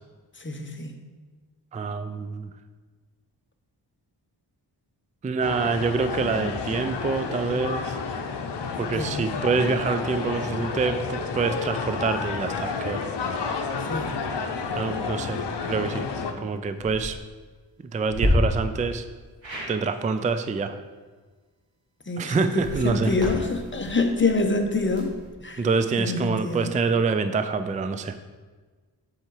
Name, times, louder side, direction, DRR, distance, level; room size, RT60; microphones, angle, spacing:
voice 1, 0.4-1.0 8.9-9.3 13.9-14.2 22.1-25.1 25.4-25.6 26.0-26.7, left 3 dB, 25° left, 5 dB, 0.8 m, -26 dB
voice 2, 1.7-2.5 5.2-8.0 8.8-13.0 14.7-16.1 16.4-17.2 17.8-19.1 19.7-20.8 22.2-23.1 25.6-28.2, right 4 dB, 20° right, 10 dB, 0.3 m, -26 dB
sound 1, 5.4-16.3, left 5 dB, 65° left, 0.8 m, -30 dB
sound 2, 16.7-17.1 18.1-18.3 19.4-19.7 22.5-25.3, equal, 85° right, 2.2 m, -33 dB
7.4 x 4.7 x 4.7 m, 1.4 s
wide cardioid pair, 70°, 44 cm